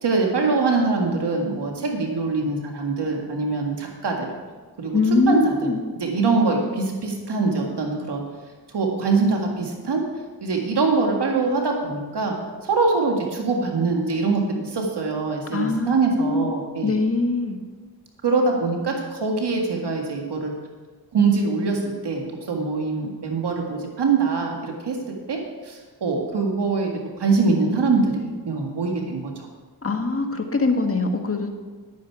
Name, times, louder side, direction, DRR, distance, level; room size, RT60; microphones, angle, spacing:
voice 1, 0.0-4.3 4.8-5.0 5.3-5.7 6.0-8.2 8.7-10.0 10.4-12.4 12.6-16.9 18.2-20.5 21.1-25.0 25.3-25.4 25.6-26.9 27.2-29.3, right 4 dB, 80° right, 1 dB, 1.9 m, -23 dB
voice 2, 4.9-5.8 15.5-15.9 16.1-16.5 16.8-17.6 29.8-31.5, left 3 dB, 35° left, 4 dB, 1.6 m, -22 dB
10.5 x 9.3 x 4.7 m, 1.4 s
cardioid pair, 45°, 40 cm